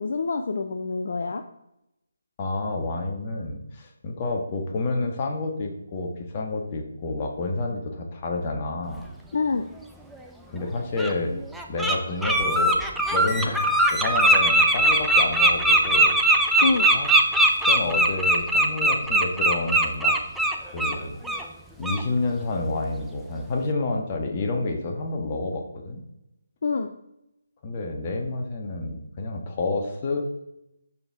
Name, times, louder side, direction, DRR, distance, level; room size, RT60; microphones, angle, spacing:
voice 1, 0.0-1.4 9.3-9.6 16.6-16.9 26.6-26.9, left 4 dB, 50° left, 7 dB, 0.5 m, -26 dB
voice 2, 2.4-9.1 10.5-11.3 11.7-12.8 13.1-13.6 13.9-16.1 16.9-17.1 17.6-20.1 20.6-21.4 21.8-26.0 27.6-30.2, left 3 dB, 30° left, 2 dB, 1.5 m, -29 dB
Bird, 10.1-10.2 11.0-11.1 11.5-11.9 12.2-20.9 21.2-21.4 21.8-22.0, right 1 dB, ahead, 0.6 m, -20 dB
12.5 x 4.6 x 3.6 m, 0.85 s
figure-of-eight pair, 150°, 0 cm